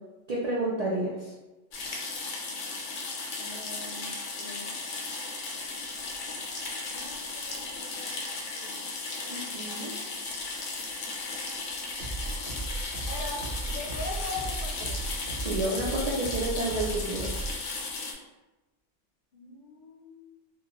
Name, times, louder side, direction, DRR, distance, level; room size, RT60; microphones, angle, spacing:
voice 1, 0.3-1.1 9.3-9.9 15.4-17.3, right 2 dB, 85° right, -5 dB, 0.3 m, -30 dB
sound 1, 1.7-18.1, left 3 dB, 80° left, 0.9 m, -36 dB
voice 2, 3.4-5.0 6.9-8.2 8.5-8.8 13.1-13.4 13.7-15.1 19.3-20.4, left 3 dB, 50° left, -3 dB, 0.7 m, -41 dB
sound 2, 12.0-17.6, right 2 dB, 70° right, 0.8 m, -36 dB
2.4 x 2.1 x 2.9 m, 1.1 s
omnidirectional pair, 1.2 m